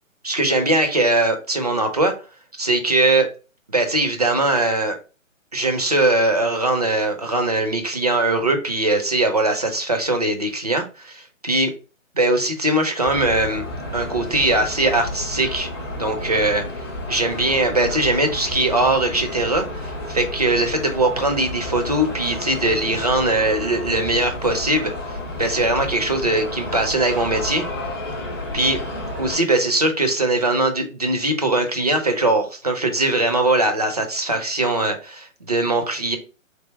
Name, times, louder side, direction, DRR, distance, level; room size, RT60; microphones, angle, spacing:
voice 1, 0.2-2.1 2.6-3.3 3.7-5.0 5.5-11.7 12.2-13.6 13.9-16.6 17.1-27.7 28.5-28.8 29.2-36.2, right 2 dB, 30° right, 5 dB, 0.4 m, -21 dB
sound 1, 13.0-29.4, left 1 dB, 20° left, 0.5 m, -31 dB
3.3 x 2.6 x 4.1 m, 0.34 s
figure-of-eight pair, 135°, 40 cm